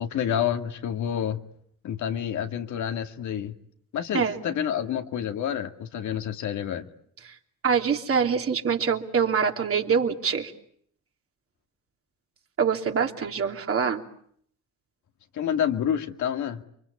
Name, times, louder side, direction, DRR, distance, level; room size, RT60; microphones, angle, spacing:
voice 1, 0.0-1.4 1.8-3.5 3.9-6.9 15.3-16.6, left 9 dB, 75° left, 2.3 m, -28 dB
voice 2, 7.6-10.5 12.6-14.0, right 6 dB, 50° right, 3.2 m, -24 dB
30.0 x 23.5 x 8.5 m
cardioid pair, 90°, 30 cm